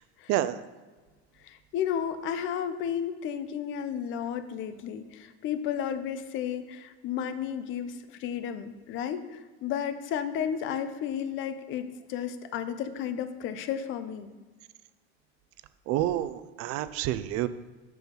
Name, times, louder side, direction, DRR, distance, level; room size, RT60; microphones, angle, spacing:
voice 1, 1.4-14.3, left 8 dB, 40° left, 11 dB, 0.6 m, -33 dB
voice 2, 15.9-17.5, right 13 dB, 45° right, 14 dB, 0.4 m, -28 dB
6.4 x 4.6 x 5.2 m, 1.3 s
supercardioid pair, 125°, 32 cm